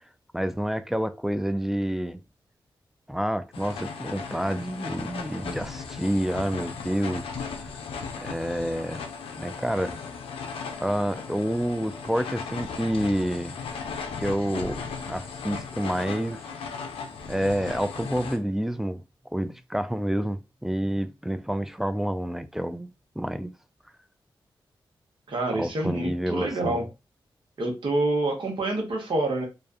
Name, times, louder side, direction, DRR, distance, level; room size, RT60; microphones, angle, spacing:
voice 1, 0.3-2.2 3.1-7.3 8.2-9.0 9.4-10.0 10.8-13.6 14.2-14.8 15.1-16.4 17.3-19.0 19.3-23.5 25.5-26.8, equal, 5° right, 0.3 m, -28 dB
sound 1, 3.5-18.4, left 5 dB, 90° left, 0.4 m, -37 dB
voice 2, 25.3-26.9 27.6-29.4, right 2 dB, 60° right, 1.1 m, -27 dB
2.5 x 2.3 x 2.4 m
cardioid pair, 45°, 9 cm